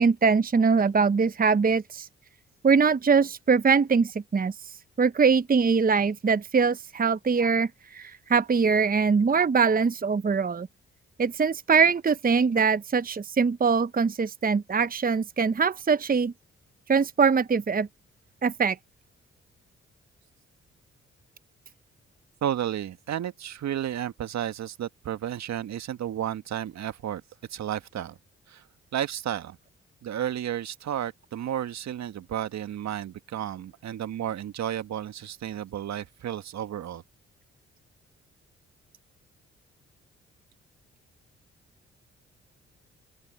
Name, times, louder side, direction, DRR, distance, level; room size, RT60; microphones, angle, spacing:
voice 1, 0.0-2.1 2.6-10.7 11.2-16.3 16.9-17.9 18.4-18.8, right 5 dB, 30° right, 0.9 m, -23 dB
voice 2, 22.4-27.2 27.5-28.2 28.5-28.6 28.9-29.6 30.0-37.0, right 10 dB, 65° right, 1.7 m, -32 dB
open air
hypercardioid pair, 40°, 30 cm